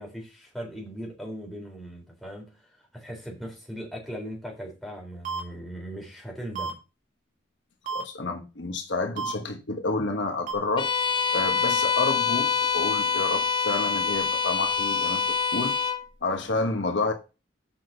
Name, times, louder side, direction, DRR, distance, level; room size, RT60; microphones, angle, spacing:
voice 1, 0.0-6.7, equal, ahead, 4.1 m, -39 dB
sound 1, 5.2-5.4 6.5-6.7 7.9-8.0 9.2-9.3 10.5-10.6, right 6 dB, 40° right, 2.4 m, -30 dB
voice 2, 7.9-10.9 11.3-15.2 15.5-15.8 16.2-17.1, left 3 dB, 65° left, 1.2 m, -29 dB
Bowed string instrument, 10.8-16.1, left 6 dB, 25° left, 0.6 m, -25 dB
7.4 x 6.1 x 5.5 m
head